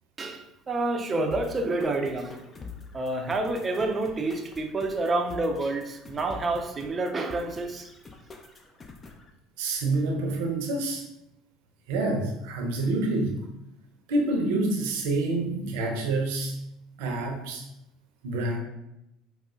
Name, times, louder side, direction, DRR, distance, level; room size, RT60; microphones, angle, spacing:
voice 1, 0.2-2.4 2.9-7.9, right 2 dB, 30° right, 0.4 m, -28 dB
sound 1, 1.3-9.3, left 4 dB, 30° left, 0.4 m, -46 dB
voice 2, 9.6-11.0 11.9-13.4 14.1-16.6 17.0-17.6 18.2-18.6, right 2 dB, 75° right, 0.6 m, -27 dB
4.9 x 2.0 x 2.4 m
hypercardioid pair, 75°, 0 cm